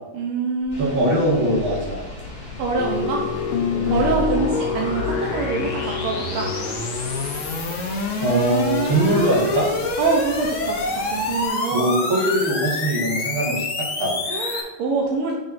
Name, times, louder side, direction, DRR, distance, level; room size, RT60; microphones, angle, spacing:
voice 1, 0.1-1.1 2.6-3.2 3.9-6.5 10.0-11.9 14.2-15.3, right 4 dB, 90° right, -2 dB, 1.7 m, -25 dB
sound 1, 0.7-14.6, left 3 dB, 55° left, 0.9 m, -28 dB
sound 2, 0.7-11.5, left 1 dB, 30° left, 2.4 m, -40 dB
voice 2, 0.8-2.0 3.8-4.0 7.9-9.7 11.7-14.2, right 1 dB, 70° right, -4 dB, 2.5 m, -22 dB
sound 3, 2.8-7.4, left 6 dB, 75° left, 1.3 m, -27 dB
9.0 x 5.4 x 2.6 m, 1.2 s
omnidirectional pair, 2.3 m